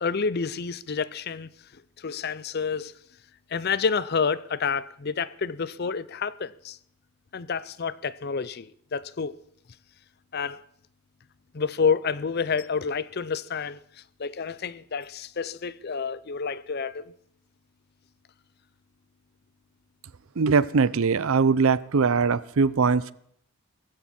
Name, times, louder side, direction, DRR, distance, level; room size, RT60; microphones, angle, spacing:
voice 1, 0.0-1.5 2.0-2.9 3.5-6.8 7.3-9.3 10.3-10.6 11.5-13.8 14.2-17.1, left 5 dB, 45° left, 0.5 m, -29 dB
voice 2, 20.4-23.1, right 5 dB, 65° right, 0.5 m, -21 dB
19.0 x 15.0 x 4.4 m
head